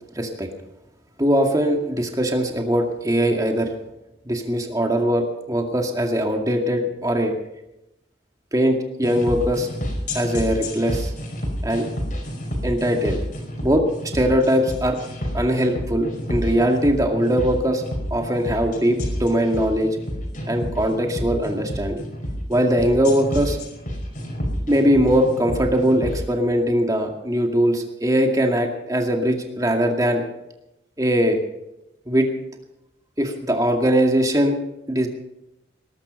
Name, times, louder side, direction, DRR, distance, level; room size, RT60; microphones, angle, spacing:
voice 1, 0.2-0.5 1.2-3.7 4.3-7.3 8.5-9.7 10.1-11.1 11.6-11.9 12.6-13.2 13.6-13.9 14.1-15.0 15.3-17.8 18.1-20.0 20.5-22.0 22.5-23.6 24.7-30.2 31.0-31.4 32.1-32.3 33.2-34.6 34.9-35.1, equal, 20° right, 3 dB, 2.2 m, -21 dB
sound 1, 9.0-26.2, equal, 45° left, 5.1 m, -29 dB
20.5 x 12.0 x 5.5 m, 0.88 s
head